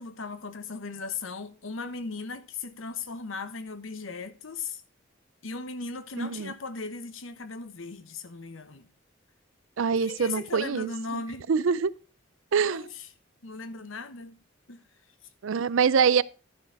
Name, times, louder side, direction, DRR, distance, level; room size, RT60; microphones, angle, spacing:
voice 1, 0.0-4.8 5.4-8.9 10.0-11.5 12.6-13.1 13.4-14.4 14.7-14.8, left 4 dB, 80° left, 1.0 m, -37 dB
voice 2, 6.2-6.5 9.8-10.9 11.5-11.9 12.5-12.8 15.4-16.2, right 6 dB, 80° right, 0.5 m, -24 dB
11.5 x 6.3 x 4.7 m
head